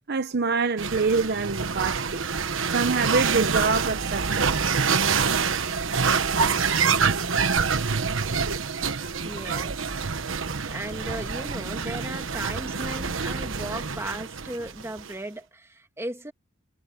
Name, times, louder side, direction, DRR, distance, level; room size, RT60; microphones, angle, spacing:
voice 1, 0.1-2.2 2.7-4.6, right 4 dB, 55° right, 0.9 m, -25 dB
sound 1, 0.8-15.1, right 5 dB, 85° right, 1.2 m, -26 dB
voice 2, 9.2-9.9 10.7-16.3, right 1 dB, 15° right, 2.2 m, -36 dB
head